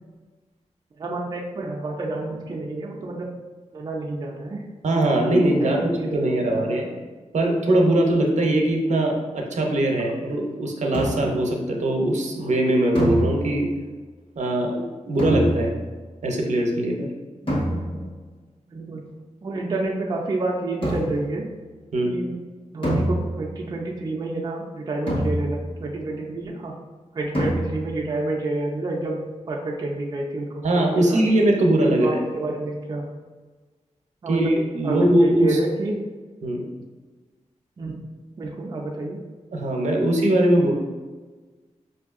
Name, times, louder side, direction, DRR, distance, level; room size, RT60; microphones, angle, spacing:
voice 1, 1.0-3.3 3.7-4.7 5.6-6.7 17.4-18.1 18.7-19.1 19.4-21.5 22.0-22.4 22.7-26.7 27.1-29.2 29.5-30.6 31.0-31.2 31.9-33.1 34.2-34.5 34.8-36.0 37.8-38.0 38.4-39.2, right 2 dB, 35° right, -1 dB, 0.4 m, -29 dB
voice 2, 4.8-6.9 7.3-13.7 14.4-15.7 16.2-17.1 21.9-22.1 30.6-32.2 34.3-35.6 36.4-36.7 39.5-40.7, right 1 dB, 75° right, 1 dB, 0.6 m, -21 dB
sound 1, 10.9-11.5 13.0-13.8 15.2-16.0 17.5-18.2 20.8-21.4 22.8-23.7 25.1-25.9 27.3-28.0, equal, 45° left, 1.2 m, -26 dB
5.0 x 2.6 x 2.4 m, 1.3 s
wide cardioid pair, 165°, 12 cm